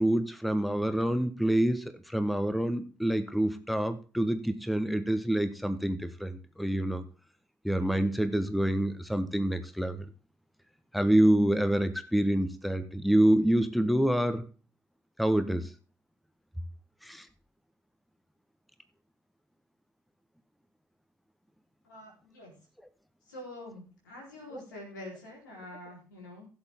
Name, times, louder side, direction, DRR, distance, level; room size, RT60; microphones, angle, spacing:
voice 1, 0.0-7.0 7.6-10.1 10.9-14.4 15.2-15.7 17.0-17.3 24.5-24.6, right 1 dB, ahead, 10 dB, 1.2 m, -27 dB
voice 2, 21.8-22.5 23.3-26.5, left 1 dB, 85° left, -3 dB, 4.0 m, -46 dB
16.0 x 7.1 x 3.7 m, 0.37 s
hypercardioid pair, 45°, 10 cm